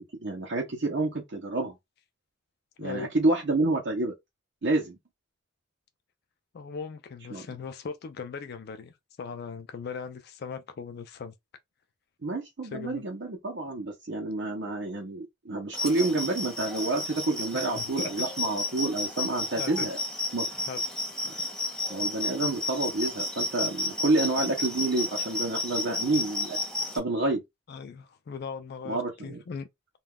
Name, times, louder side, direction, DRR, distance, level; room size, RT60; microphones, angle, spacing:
voice 1, 0.2-1.8 2.8-4.1 4.6-5.0 7.3-7.5 12.2-20.0 20.3-20.5 21.2-21.4 21.9-26.6 26.9-27.4 28.8-29.4, right 2 dB, 65° right, 0.6 m, -29 dB
voice 2, 2.8-3.1 6.5-11.3 12.7-13.0 17.5-18.1 19.6-19.9 20.7-20.8 27.7-29.7, left 5 dB, 55° left, 0.4 m, -39 dB
sound 1, 15.7-27.0, left 2 dB, 5° left, 0.6 m, -32 dB
2.3 x 2.3 x 3.4 m
head